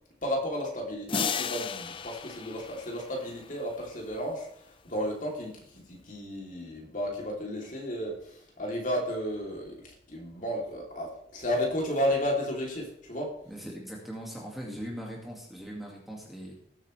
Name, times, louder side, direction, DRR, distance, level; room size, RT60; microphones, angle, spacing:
voice 1, 0.2-13.3, equal, 45° left, -1 dB, 3.2 m, -33 dB
sound 1, 1.1-3.9, left 6 dB, 30° left, 0.5 m, -34 dB
voice 2, 13.5-16.5, equal, ahead, -2 dB, 2.0 m, -40 dB
19.5 x 8.2 x 3.3 m, 0.69 s
head